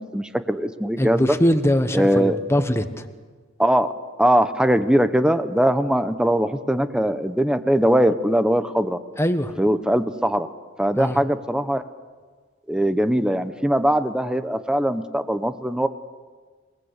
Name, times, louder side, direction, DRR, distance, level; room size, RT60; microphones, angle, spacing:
voice 1, 0.0-1.2 1.9-2.4 3.6-3.9 4.2-9.0 9.6-10.5 10.8-11.8 12.7-15.9, equal, 5° right, 10 dB, 0.9 m, -21 dB
voice 2, 1.0-3.1 9.2-9.6 10.9-11.2, equal, 15° left, 8 dB, 1.3 m, -22 dB
28.0 x 19.5 x 8.2 m, 1.5 s
head